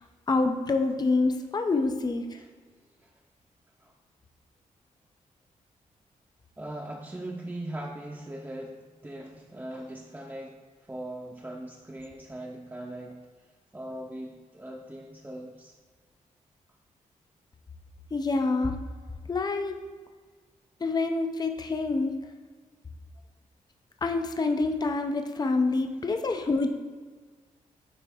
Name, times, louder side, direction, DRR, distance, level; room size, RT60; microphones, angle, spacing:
voice 1, 0.3-2.4 18.1-18.8 19.3-19.7 20.8-22.1 24.0-26.7, left 3 dB, 30° left, 6 dB, 0.6 m, -26 dB
voice 2, 6.6-10.6 10.8-13.2 13.7-15.7, right 1 dB, 15° right, -1 dB, 0.8 m, -40 dB
9.2 x 3.3 x 3.5 m, 1.5 s
cardioid pair, 60°, 14 cm